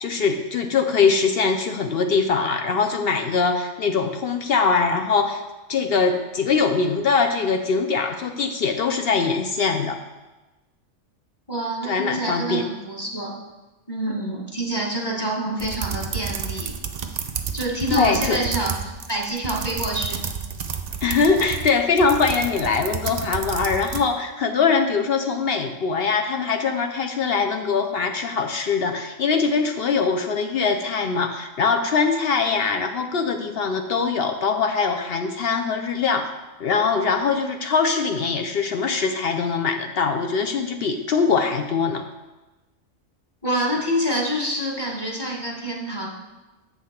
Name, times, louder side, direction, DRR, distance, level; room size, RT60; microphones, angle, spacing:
voice 1, 0.0-5.4 5.7-10.0 11.8-12.6 17.9-18.4 21.0-36.3 36.6-42.0, left 5 dB, 60° left, 5 dB, 0.6 m, -22 dB
voice 2, 11.5-13.4 13.9-16.8 17.5-20.2 43.4-46.1, right 1 dB, 20° left, -2 dB, 1.2 m, -27 dB
sound 1, 15.6-24.0, right 7 dB, 65° right, 0.4 m, -30 dB
7.8 x 5.7 x 4.3 m, 1.1 s
omnidirectional pair, 1.4 m